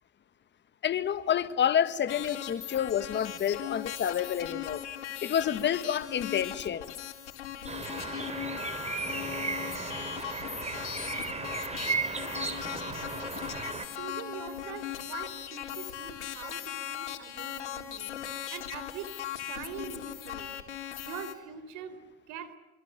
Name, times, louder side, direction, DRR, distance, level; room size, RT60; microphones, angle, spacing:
voice 1, 0.8-4.8 5.2-6.9, left 9 dB, 30° left, 1.8 m, -29 dB
sound 1, 2.1-21.3, left 10 dB, 85° left, 3.9 m, -39 dB
sound 2, 7.7-13.9, right 4 dB, 20° right, 3.3 m, -35 dB
voice 2, 13.9-20.6 21.0-22.0 22.3-22.6, right 8 dB, 60° right, 4.0 m, -43 dB
26.5 x 26.0 x 7.5 m
hypercardioid pair, 100°, 34 cm